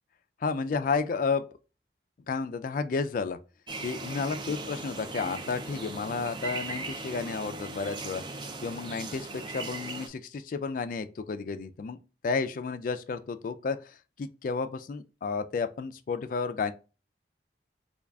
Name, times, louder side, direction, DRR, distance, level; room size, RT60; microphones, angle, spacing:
voice 1, 0.4-1.4 2.3-3.4 3.8-8.2 8.6-12.0 12.2-16.7, left 4 dB, 50° left, 0.3 m, -32 dB
sound 1, 3.7-10.1, right 3 dB, 25° right, 0.4 m, -38 dB
3.6 x 2.3 x 3.4 m
head